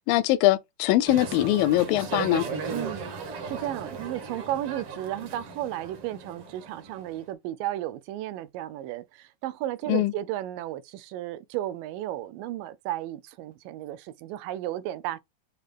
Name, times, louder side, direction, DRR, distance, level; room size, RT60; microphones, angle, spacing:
voice 1, 0.0-2.5 9.9-10.1, left 15 dB, 90° left, 2.3 m, -22 dB
sound 1, 1.1-7.2, right 5 dB, 55° right, 1.9 m, -36 dB
voice 2, 2.7-15.2, right 13 dB, 80° right, 2.2 m, -34 dB
9.3 x 3.2 x 3.3 m
omnidirectional pair, 4.0 m